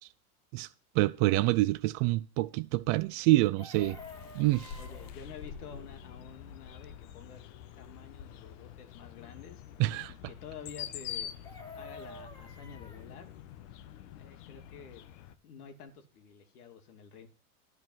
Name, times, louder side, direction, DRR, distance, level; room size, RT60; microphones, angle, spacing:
voice 1, 0.9-4.0 4.3-4.8 9.8-10.1, right 19 dB, 35° right, 0.4 m, -27 dB
Chicken rooster, 3.3-5.1 11.2-13.0 15.3-15.4 15.6-15.9, left 3 dB, 10° left, 2.1 m, -49 dB
sound 1, 3.7-15.3, left 9 dB, 55° left, 1.0 m, -46 dB
voice 2, 4.8-7.4 7.8-9.6 10.1-11.3 11.7-13.3 14.2-15.0 15.4-17.3, left 6 dB, 75° left, 2.8 m, -49 dB
12.0 x 4.6 x 7.9 m
hypercardioid pair, 120°, 46 cm